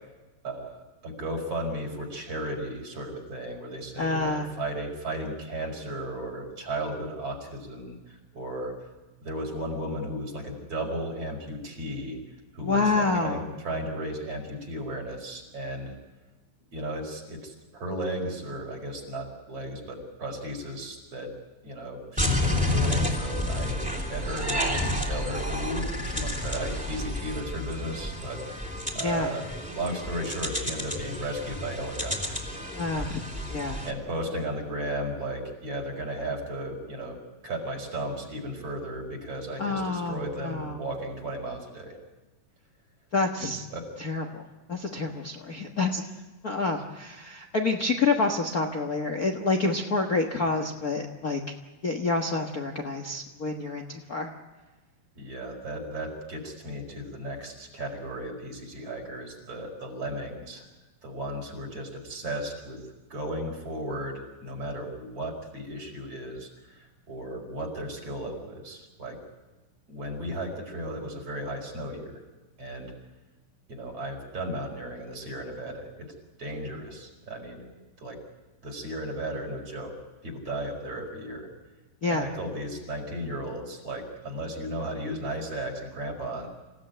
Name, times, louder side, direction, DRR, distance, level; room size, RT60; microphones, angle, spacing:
voice 1, 0.4-8.7 9.2-12.2 12.5-15.9 16.7-21.3 21.6-32.4 33.8-37.2 37.4-42.0 43.7-43.8 55.2-60.7 61.0-62.8 63.1-69.2 69.9-72.2 72.6-72.9 73.7-76.1 76.4-77.7 78.0-78.2 78.6-79.9 80.2-81.5 82.0-86.5, right 1 dB, 40° right, 4 dB, 5.6 m, -35 dB
voice 2, 4.0-4.5 12.6-13.4 28.9-29.3 32.7-33.2 33.5-33.8 39.6-40.8 43.1-43.7 44.0-46.0 46.4-51.4 51.8-54.3 82.0-82.3, left 3 dB, 85° left, 4 dB, 0.8 m, -28 dB
sound 1, 22.2-33.9, left 1 dB, ahead, 2.7 m, -30 dB
27.5 x 16.5 x 9.1 m, 1.2 s
omnidirectional pair, 4.2 m